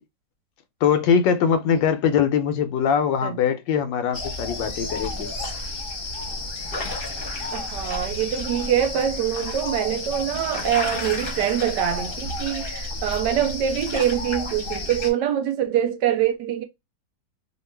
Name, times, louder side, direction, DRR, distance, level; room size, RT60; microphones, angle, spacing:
voice 1, 0.8-5.3, left 7 dB, 80° left, 1.3 m, -22 dB
sound 1, 4.1-15.1, left 2 dB, 40° left, 0.9 m, -31 dB
voice 2, 7.5-16.6, right 10 dB, 75° right, 1.1 m, -24 dB
2.9 x 2.4 x 3.2 m
omnidirectional pair, 2.0 m